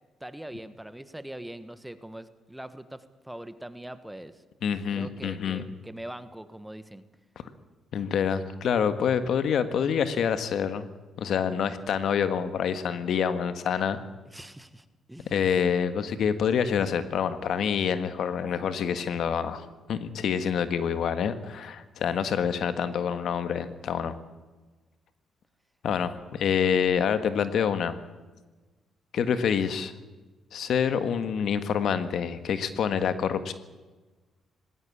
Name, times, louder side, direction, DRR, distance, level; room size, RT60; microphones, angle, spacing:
voice 1, 0.2-4.4 4.9-7.0 14.2-15.4, right 1 dB, 5° right, 12 dB, 1.5 m, -42 dB
voice 2, 4.6-5.6 7.9-10.8 11.2-14.0 15.3-24.1 25.8-27.9 29.1-29.9 30.5-33.5, left 7 dB, 65° left, 11 dB, 1.6 m, -27 dB
19.5 x 17.0 x 8.6 m, 1.2 s
cardioid pair, 90°, 0 cm